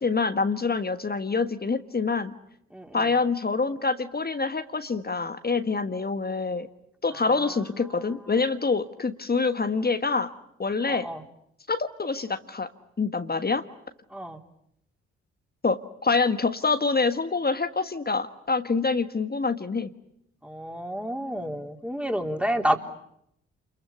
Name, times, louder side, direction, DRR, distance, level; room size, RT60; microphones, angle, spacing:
voice 1, 0.0-2.3 2.9-6.7 7.0-10.3 10.6-11.1 11.7-12.7 13.0-13.6 15.6-19.9, left 4 dB, 30° left, 9 dB, 1.5 m, -26 dB
voice 2, 2.7-3.1 7.3-7.6 10.9-11.2 14.1-14.4 20.4-22.8, equal, 5° right, 4 dB, 3.6 m, -30 dB
28.0 x 22.5 x 8.5 m, 0.76 s
hypercardioid pair, 40°, 34 cm